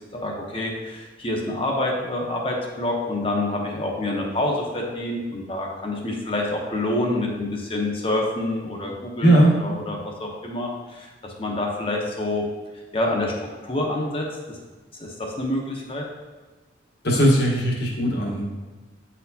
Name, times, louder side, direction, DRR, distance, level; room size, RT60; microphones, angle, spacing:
voice 1, 0.1-12.4 12.9-13.3 13.6-14.6 15.0-16.1, left 1 dB, 30° left, -1 dB, 0.9 m, -27 dB
voice 2, 9.2-9.5 17.0-18.4, right 1 dB, 55° left, -2 dB, 1.3 m, -18 dB
9.0 x 4.3 x 2.8 m, 1.2 s
head